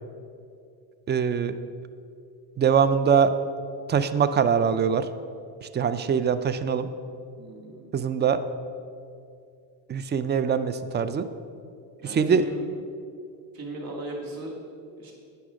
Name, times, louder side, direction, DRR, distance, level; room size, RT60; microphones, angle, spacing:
voice 1, 1.1-1.5 2.6-3.3 3.9-5.1 5.6-6.9 7.9-8.4 9.9-11.3 12.1-12.4, right 7 dB, 25° right, 12 dB, 0.4 m, -23 dB
voice 2, 7.4-7.9 12.0-12.7 13.5-14.5 14.8-15.1, right 2 dB, 50° right, 0 dB, 2.2 m, -37 dB
9.8 x 5.9 x 5.0 m, 2.5 s
supercardioid pair, 90°, 46 cm